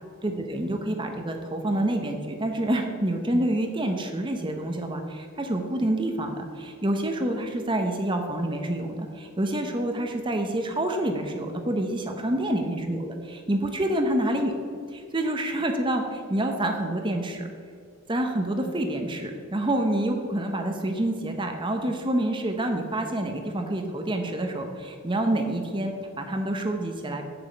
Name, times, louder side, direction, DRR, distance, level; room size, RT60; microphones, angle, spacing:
voice 1, 0.2-14.5 14.9-17.5 18.1-27.2, right 1 dB, 20° right, 4 dB, 0.7 m, -27 dB
7.8 x 6.9 x 5.2 m, 2.3 s
head